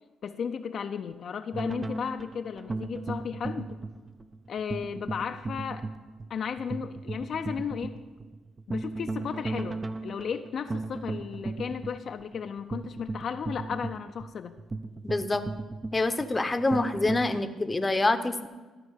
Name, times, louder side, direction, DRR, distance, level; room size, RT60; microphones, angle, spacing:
voice 1, 0.2-3.8 4.5-5.9 6.3-8.0 8.7-14.6, left 7 dB, 60° left, 6 dB, 0.5 m, -34 dB
sound 1, 1.5-17.4, right 3 dB, 25° right, 0.5 m, -36 dB
voice 2, 15.0-15.4 15.9-18.5, left 2 dB, 20° left, 9 dB, 0.7 m, -26 dB
13.0 x 4.4 x 8.1 m, 1.3 s
cardioid pair, 90°, 0 cm